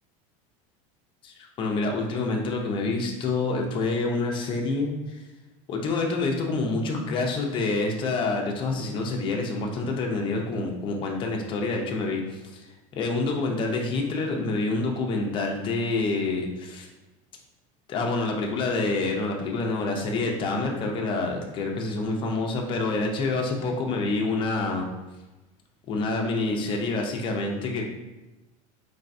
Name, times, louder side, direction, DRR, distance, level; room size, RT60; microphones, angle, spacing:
voice 1, 1.2-5.2 5.7-12.7 12.9-16.9 17.9-24.9 25.9-27.9, left 3 dB, 30° left, 1 dB, 0.6 m, -27 dB
4.3 x 3.3 x 2.6 m, 1.1 s
supercardioid pair, 155°, 17 cm